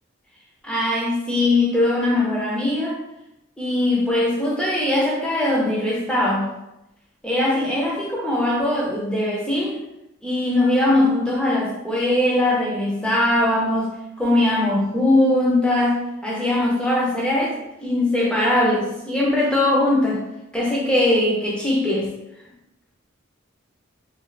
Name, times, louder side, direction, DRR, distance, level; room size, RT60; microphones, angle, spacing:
voice 1, 0.6-3.0 3.6-6.5 7.2-9.8 10.2-13.9 14.2-17.5 17.8-20.2 20.5-22.1, left 1 dB, 5° left, -4 dB, 0.5 m, -20 dB
3.1 x 2.3 x 2.5 m, 0.90 s
head